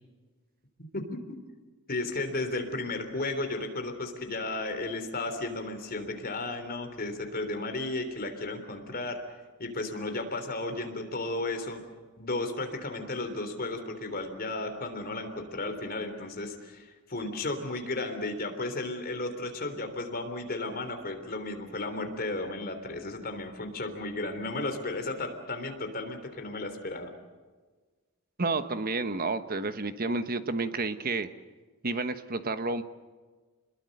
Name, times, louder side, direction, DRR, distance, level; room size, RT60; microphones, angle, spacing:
voice 1, 1.9-9.2 9.6-11.8 12.2-27.1, left 2 dB, 40° left, 6 dB, 3.5 m, -34 dB
voice 2, 28.4-31.3 31.8-32.8, right 3 dB, 40° right, 10 dB, 1.2 m, -30 dB
27.5 x 21.5 x 6.7 m, 1.4 s
head